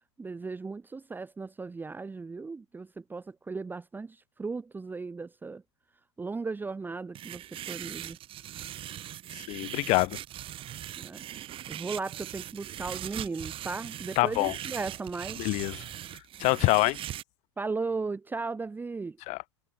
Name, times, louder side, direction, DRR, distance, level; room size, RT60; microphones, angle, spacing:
voice 1, 0.2-5.6 6.2-8.2 11.0-11.2 11.7-15.4 17.6-19.2, right 4 dB, 15° right, 1.0 m, -36 dB
sound 1, 7.2-17.2, right 12 dB, 40° right, 1.8 m, -40 dB
voice 2, 9.4-10.2 14.1-14.5 15.4-15.8 16.4-17.0 19.3-19.4, left 24 dB, 55° left, 1.5 m, -25 dB
hypercardioid pair, 100°, 14 cm